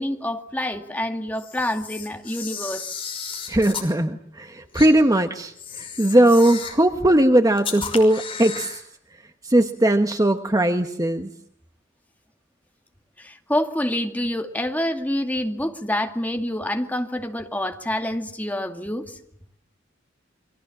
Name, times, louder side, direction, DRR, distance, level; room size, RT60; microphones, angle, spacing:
voice 1, 0.0-3.0 13.2-19.2, left 1 dB, 10° left, 4 dB, 2.3 m, -27 dB
Camera, 1.4-3.9 4.7-4.9 5.6-6.9 7.6-8.8, left 6 dB, 30° left, 5.7 m, -34 dB
voice 2, 3.5-8.8 9.4-11.3, right 1 dB, 20° right, 7 dB, 1.2 m, -19 dB
30.0 x 24.5 x 7.4 m, 0.69 s
head